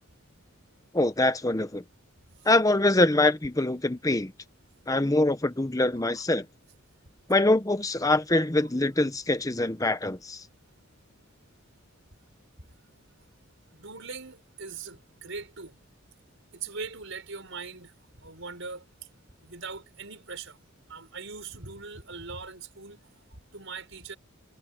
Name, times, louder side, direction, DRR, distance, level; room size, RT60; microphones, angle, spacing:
voice 1, 0.9-1.8 2.5-4.3 4.9-6.5 7.3-10.4, left 2 dB, 15° left, 0.9 m, -24 dB
voice 2, 6.0-6.3 8.6-8.7 13.7-15.8 16.5-18.9 19.4-20.6 20.9-23.0 23.5-24.2, right 4 dB, 60° right, 7.0 m, -41 dB
head